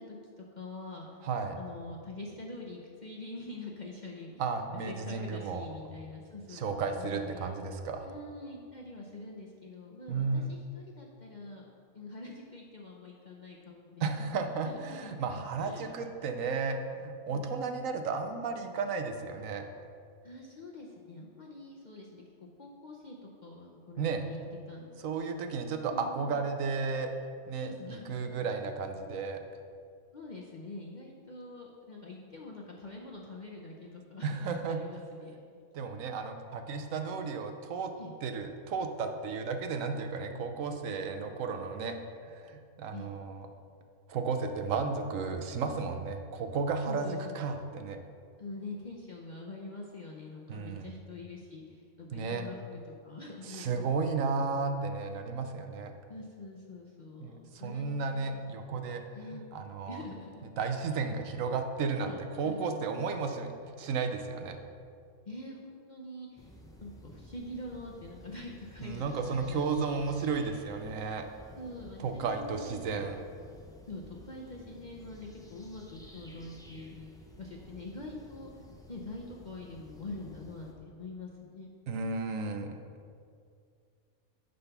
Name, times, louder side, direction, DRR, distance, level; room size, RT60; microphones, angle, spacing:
voice 1, 0.0-1.1 1.6-4.6 4.9-7.5 8.0-11.6 11.9-14.0 14.6-15.3 15.6-15.9 17.3-17.5 20.2-22.2 22.6-24.4 24.7-24.9 25.9-26.4 27.6-28.5 30.1-35.4 38.0-38.1 42.9-43.1 46.8-47.6 48.4-53.9 56.1-58.4 58.7-58.9 59.1-59.4 59.9-60.5 61.9-62.7 65.3-66.5 66.8-69.7 70.0-70.3 71.5-73.0 73.4-73.6 73.9-77.1 77.4-78.5 78.9-81.7, left 2 dB, 40° left, -2 dB, 0.7 m, -45 dB
voice 2, 1.2-1.6 4.4-5.7 6.5-8.1 10.1-10.5 14.0-19.7 24.0-24.2 25.0-27.1 27.5-29.4 34.2-34.8 35.7-37.9 38.2-42.0 42.2-43.5 44.1-48.0 50.5-50.9 52.1-52.5 53.4-55.9 57.2-59.0 59.3-60.0 60.6-63.5 63.8-64.6 68.8-71.2 72.0-73.2 81.9-82.8, right 4 dB, 70° right, 6 dB, 1.0 m, -33 dB
sound 1, 66.4-80.7, equal, 5° left, 0.4 m, -53 dB
10.0 x 4.0 x 5.7 m, 2.3 s
omnidirectional pair, 1.5 m